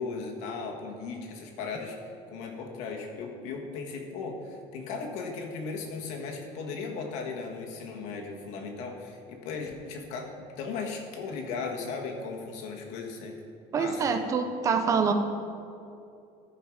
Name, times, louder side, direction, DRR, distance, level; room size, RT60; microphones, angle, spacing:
voice 1, 0.0-13.4 13.7-14.1, left 4 dB, 60° left, 1 dB, 1.5 m, -37 dB
voice 2, 13.7-15.1, right 5 dB, 25° right, 7 dB, 0.7 m, -25 dB
14.0 x 5.7 x 5.0 m, 2.6 s
cardioid pair, 170°, 13 cm